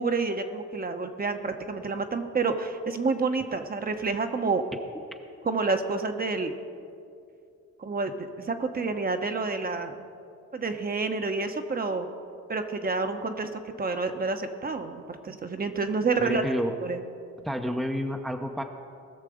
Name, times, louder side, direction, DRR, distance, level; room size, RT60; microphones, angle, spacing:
voice 1, 0.0-4.6 5.4-6.5 7.8-9.9 10.5-12.1 12.5-16.4 16.8-17.0, right 4 dB, 30° right, 6 dB, 1.0 m, -29 dB
voice 2, 16.2-16.7 17.4-18.6, equal, ahead, 4 dB, 0.7 m, -29 dB
19.5 x 6.6 x 5.0 m, 2.4 s
cardioid pair, 90°, 30 cm